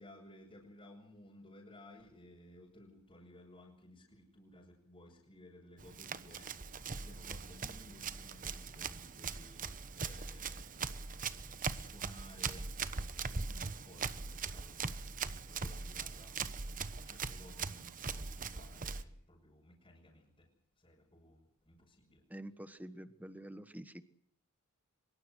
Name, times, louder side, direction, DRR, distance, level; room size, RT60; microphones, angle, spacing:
voice 1, 0.0-6.5 6.9-9.6 9.9-10.7 11.7-12.7 13.3-16.3 16.7-16.8 17.0-20.5 20.8-22.2, left 1 dB, 25° left, -4 dB, 6.5 m, -57 dB
Run, 5.8-19.0, right 5 dB, 40° right, 1.1 m, -41 dB
voice 2, 22.3-24.0, right 1 dB, 5° right, 11 dB, 1.4 m, -47 dB
24.5 x 23.0 x 6.4 m, 0.67 s
head